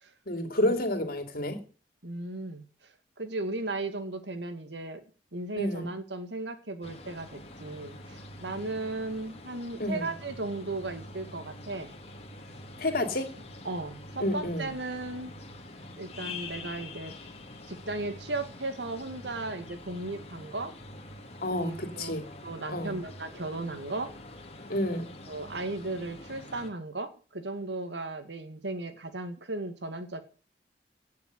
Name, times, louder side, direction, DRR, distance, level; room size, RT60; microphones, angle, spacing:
voice 1, 0.3-1.6 5.6-5.9 9.8-10.1 12.8-13.3 14.2-14.7 21.4-22.2 22.7-23.0 24.7-25.1, left 1 dB, 55° left, 7 dB, 3.2 m, -29 dB
voice 2, 2.0-2.7 3.2-5.0 5.3-11.9 13.6-15.3 16.0-17.2 17.7-20.7 21.5-22.2 22.4-24.1 25.3-30.2, right 2 dB, 80° right, 9 dB, 2.2 m, -36 dB
sound 1, 6.8-26.7, left 2 dB, 35° left, 2.6 m, -45 dB
17.0 x 7.1 x 8.0 m, 0.39 s
head